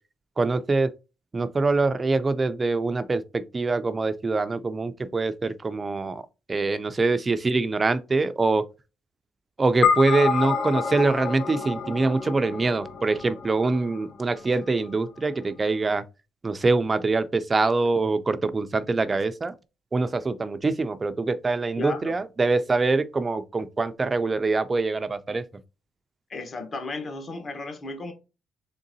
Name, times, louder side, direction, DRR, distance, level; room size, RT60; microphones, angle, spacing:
voice 1, 0.4-0.9 1.3-6.2 6.5-8.6 9.6-16.0 16.4-19.5 19.9-25.4, right 3 dB, 30° right, 0.3 m, -24 dB
sound 1, 9.8-14.4, left 6 dB, 65° left, 0.7 m, -28 dB
voice 2, 21.8-22.1 26.3-28.1, left 3 dB, 45° left, 1.0 m, -34 dB
3.7 x 3.6 x 2.6 m
cardioid pair, 90°, 0 cm